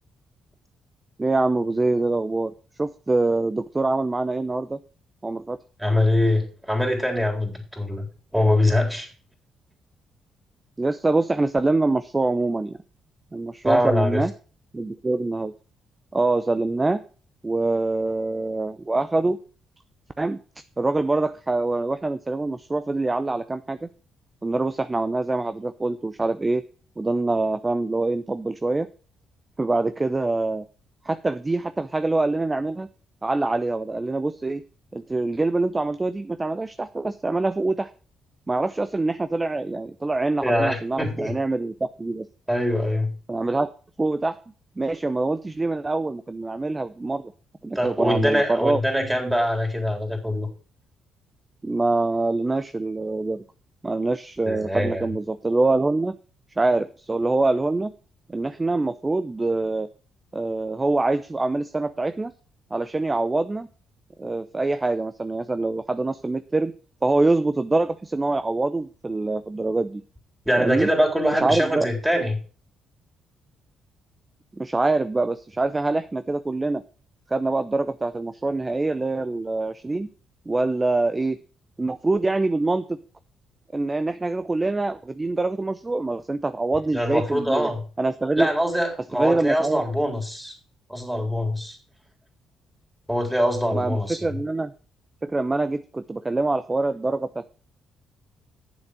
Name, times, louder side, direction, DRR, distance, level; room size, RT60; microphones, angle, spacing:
voice 1, 1.2-2.5 2.8-4.8 5.2-5.6 10.8-12.8 13.3-14.3 14.7-15.5 16.1-17.0 17.4-19.4 20.2-20.4 20.8-23.9 24.4-26.6 27.0-28.9 29.6-30.6 31.0-32.9 33.2-34.6 34.9-37.9 38.5-42.3 43.3-43.7 44.0-44.4 44.8-47.3 47.6-48.8 51.6-53.4 53.8-56.1 56.6-57.9 58.3-59.9 60.3-62.3 62.7-63.7 64.2-66.7 67.0-70.0 70.6-70.9 71.3-71.9 74.6-76.8 77.3-80.1 80.5-81.4 81.8-83.0 83.7-87.7 88.0-88.5 89.2-89.8 93.7-94.7 95.2-97.5, right 2 dB, 20° right, 11 dB, 0.6 m, -24 dB
voice 2, 5.8-8.0 8.3-9.1 13.6-14.2 40.4-41.3 42.5-43.1 47.7-50.5 54.4-55.0 70.5-72.4 86.9-87.8 88.4-90.5 90.9-91.8 93.1-94.3, left 1 dB, 5° right, 1 dB, 3.9 m, -23 dB
9.1 x 7.2 x 6.5 m, 0.38 s
cardioid pair, 90°, 0 cm